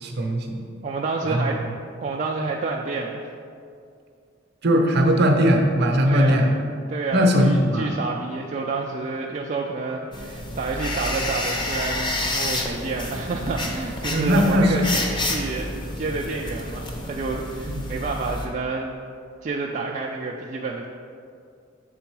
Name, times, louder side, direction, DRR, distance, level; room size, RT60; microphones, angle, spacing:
voice 1, 0.0-0.6 1.2-1.5 4.6-6.5 7.1-8.0 14.1-14.7, equal, 55° right, 3 dB, 0.7 m, -19 dB
voice 2, 0.8-1.6 2.0-3.2 6.0-6.5 6.9-18.9 19.4-20.9, right 3 dB, 40° right, -1 dB, 0.3 m, -29 dB
sound 1, 10.1-18.5, left 1 dB, 25° left, 0.7 m, -29 dB
6.8 x 3.7 x 4.6 m, 2.4 s
head